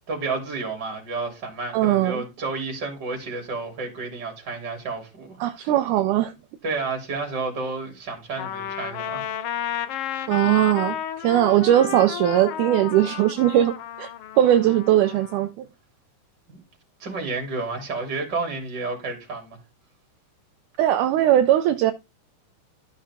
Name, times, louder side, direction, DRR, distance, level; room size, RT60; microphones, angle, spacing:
voice 1, 0.1-5.7 6.6-9.2 11.8-11.9 16.5-16.6 17.0-19.6, right 3 dB, 30° right, 3.6 m, -31 dB
voice 2, 1.7-2.2 5.4-6.3 10.3-14.1 14.4-15.7 20.8-21.9, right 12 dB, 80° right, 2.1 m, -20 dB
Trumpet, 8.4-15.5, left 10 dB, 80° left, 1.3 m, -32 dB
13.5 x 5.5 x 3.6 m
omnidirectional pair, 3.8 m